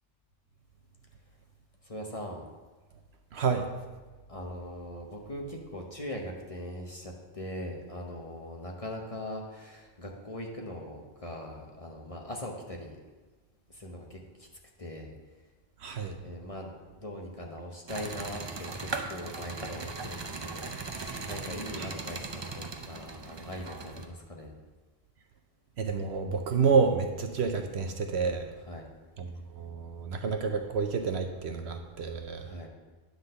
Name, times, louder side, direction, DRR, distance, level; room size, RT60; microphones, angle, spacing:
voice 1, 1.8-2.4 4.3-13.0 13.7-14.5 14.8-15.1 16.2-16.7 17.0-24.5 28.7-28.9 32.4-32.7, left 1 dB, 30° left, 0 dB, 0.9 m, -41 dB
voice 2, 3.3-3.7 15.8-16.2 21.8-21.9 25.8-28.5 29.2-32.7, right 5 dB, 65° right, 6 dB, 0.8 m, -29 dB
sound 1, 17.9-24.1, right 4 dB, 45° right, 0.3 m, -38 dB
9.8 x 3.9 x 6.5 m, 1.3 s
omnidirectional pair, 1.3 m